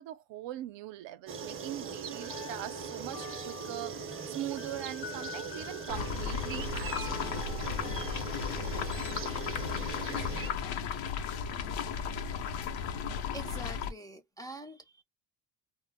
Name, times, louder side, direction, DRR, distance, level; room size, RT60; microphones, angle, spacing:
voice 1, 0.0-7.4, right 12 dB, 70° right, 0.6 m, -42 dB
sound 1, 1.3-10.5, right 6 dB, 30° right, 0.6 m, -40 dB
sound 2, 2.2-8.4, left 9 dB, 45° left, 0.6 m, -47 dB
sound 3, 5.9-13.9, left 6 dB, 85° left, 0.7 m, -35 dB
voice 2, 13.3-15.0, right 1 dB, 10° left, 0.3 m, -45 dB
2.1 x 2.0 x 3.3 m
cardioid pair, 105°, 46 cm